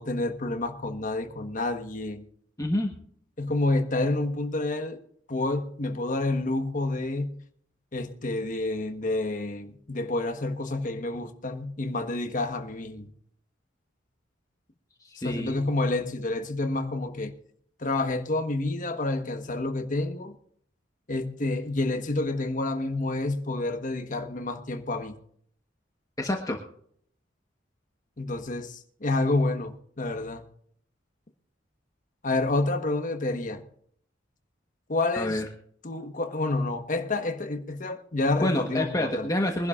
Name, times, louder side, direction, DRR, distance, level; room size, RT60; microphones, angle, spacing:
voice 1, 0.0-2.2 3.4-5.0 5.3-7.4 7.9-13.1 15.2-17.3 17.8-20.3 21.1-25.2 28.2-30.4 32.2-33.6 34.9-35.4 35.8-39.3, left 2 dB, 45° left, 1.3 m, -29 dB
voice 2, 2.6-2.9 15.0-15.6 26.2-26.6 35.1-35.5 38.4-39.7, left 1 dB, 20° left, 1.3 m, -28 dB
23.5 x 11.5 x 2.5 m
head